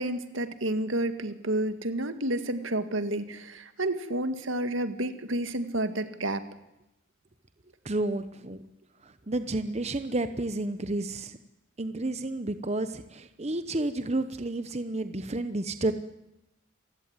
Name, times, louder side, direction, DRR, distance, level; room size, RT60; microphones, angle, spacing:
voice 1, 0.0-6.4, right 1 dB, 80° right, 10 dB, 2.0 m, -30 dB
voice 2, 7.8-8.6 9.0-11.4 11.8-15.9, right 2 dB, 35° right, 10 dB, 0.9 m, -31 dB
27.5 x 16.0 x 9.7 m, 0.91 s
head